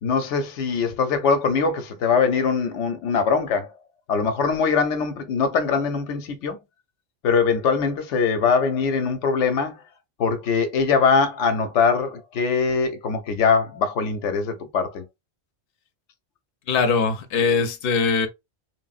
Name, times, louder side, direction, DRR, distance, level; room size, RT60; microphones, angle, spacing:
voice 1, 0.0-3.7 4.1-6.6 7.2-9.8 10.2-15.0, left 5 dB, 85° left, 0.9 m, -22 dB
voice 2, 16.7-18.3, left 5 dB, 60° left, 0.7 m, -21 dB
3.2 x 2.0 x 2.3 m
omnidirectional pair, 1.2 m